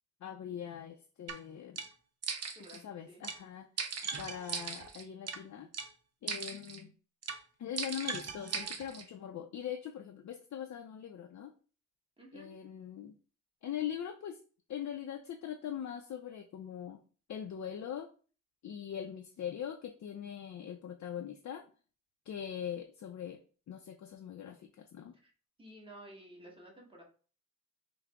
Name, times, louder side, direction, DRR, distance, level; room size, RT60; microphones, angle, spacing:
voice 1, 0.2-1.8 2.7-3.7 4.2-5.7 6.2-6.9 7.6-11.5 12.3-13.2 13.6-14.4 14.7-17.0 17.3-18.1 18.6-21.6 22.3-23.4 23.7-25.1, left 9 dB, 60° left, 5 dB, 0.4 m, -41 dB
sound 1, 1.3-1.4 1.8-1.9 2.2-2.8 3.2-3.4 3.8-5.4 5.7-5.9 6.3-6.8 7.2-7.4 7.8-9.0, right 5 dB, 55° right, 0.6 m, -38 dB
voice 2, 2.5-3.2 12.2-12.5 25.2-25.3 25.6-27.0, right 1 dB, 15° right, -2 dB, 1.2 m, -53 dB
5.6 x 2.0 x 3.5 m, 0.40 s
wide cardioid pair, 135°, 31 cm